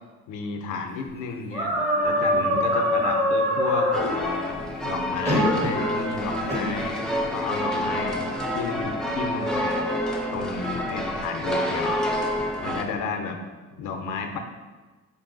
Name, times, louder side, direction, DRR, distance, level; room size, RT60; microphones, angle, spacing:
voice 1, 0.3-1.7 2.0-7.0 7.3-8.2 8.5-9.9 10.3-12.2 12.6-13.4 13.7-14.4, left 4 dB, 85° left, 5 dB, 0.6 m, -32 dB
sound 1, 1.5-4.1 5.2-5.9 6.5-6.7, left 1 dB, 20° right, 1.4 m, -23 dB
sound 2, 3.9-12.8, equal, ahead, 0.5 m, -28 dB
5.2 x 2.6 x 3.8 m, 1.3 s
cardioid pair, 90°, 30 cm